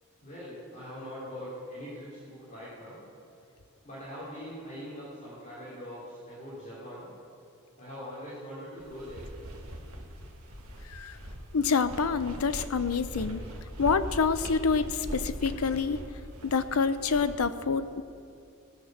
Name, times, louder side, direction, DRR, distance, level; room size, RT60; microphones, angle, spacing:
voice 1, 0.2-3.0 3.8-7.1 7.8-9.2, equal, 35° left, -10 dB, 3.5 m, -42 dB
sound 1, 8.8-17.3, equal, 90° right, 1.6 m, -41 dB
voice 2, 11.5-13.4 13.8-16.0 16.4-18.0, left 5 dB, 90° left, 12 dB, 0.6 m, -27 dB
18.0 x 7.3 x 6.3 m, 2.6 s
head